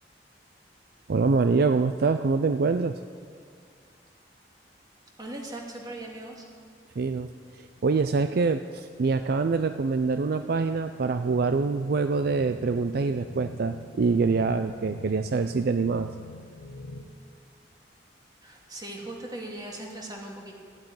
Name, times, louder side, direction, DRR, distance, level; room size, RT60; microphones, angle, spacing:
voice 1, 1.1-3.0 7.0-7.3 7.8-16.1, right 4 dB, 55° right, 10 dB, 0.4 m, -25 dB
voice 2, 5.2-6.5 18.4-20.6, right 1 dB, 20° right, 0 dB, 2.2 m, -39 dB
sound 1, 7.3-17.0, left 1 dB, 85° left, 1.0 m, -46 dB
13.5 x 8.8 x 9.5 m, 2.1 s
head